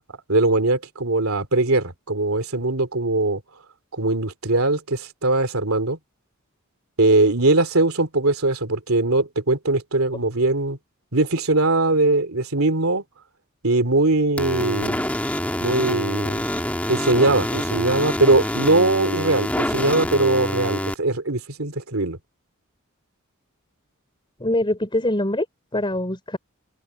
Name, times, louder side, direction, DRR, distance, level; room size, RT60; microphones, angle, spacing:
voice 1, 0.3-3.4 3.9-6.0 7.0-10.8 11.1-13.0 13.6-15.0 15.6-16.4 16.9-22.2, right 2 dB, 75° right, 3.1 m, -21 dB
sound 1, 14.4-20.9, left 1 dB, 5° left, 2.5 m, -26 dB
voice 2, 24.4-25.5 25.7-26.4, left 1 dB, 25° left, 4.2 m, -23 dB
open air
head